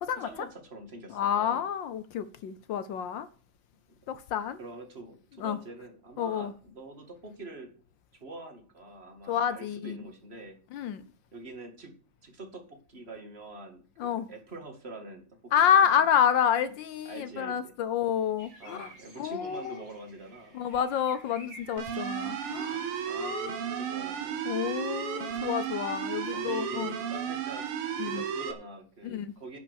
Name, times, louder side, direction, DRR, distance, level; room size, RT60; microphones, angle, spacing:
voice 1, 0.2-1.6 3.9-4.0 4.6-7.7 8.2-10.6 11.3-11.9 12.2-16.0 17.1-17.7 18.6-20.6 22.6-24.4 26.3-27.7 28.0-29.6, right 2 dB, 30° right, 2.2 m, -45 dB
voice 2, 1.1-3.3 4.1-4.6 5.4-5.6 6.2-6.5 9.3-10.0 10.7-11.0 14.0-14.3 15.5-19.8 20.5-22.9 23.2-23.6 24.4-26.9 28.0-28.2 29.0-29.3, left 8 dB, 70° left, 1.2 m, -29 dB
sound 1, 18.4-23.5, right 1 dB, 65° right, 4.7 m, -52 dB
sound 2, 21.8-28.5, right 8 dB, 80° right, 2.1 m, -33 dB
11.0 x 5.7 x 8.1 m
omnidirectional pair, 2.4 m